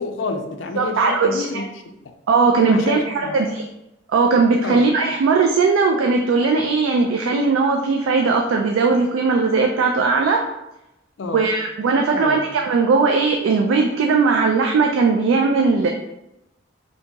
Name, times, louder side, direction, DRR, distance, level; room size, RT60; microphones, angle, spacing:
voice 1, 0.0-2.0 2.7-3.4 4.6-4.9 11.2-11.5 12.1-12.4, left 3 dB, 70° left, 4 dB, 0.4 m, -29 dB
voice 2, 0.8-1.6 2.3-3.7 4.1-10.4 11.3-15.9, right 4 dB, 80° right, 2 dB, 0.3 m, -18 dB
2.8 x 2.7 x 3.4 m, 0.91 s
head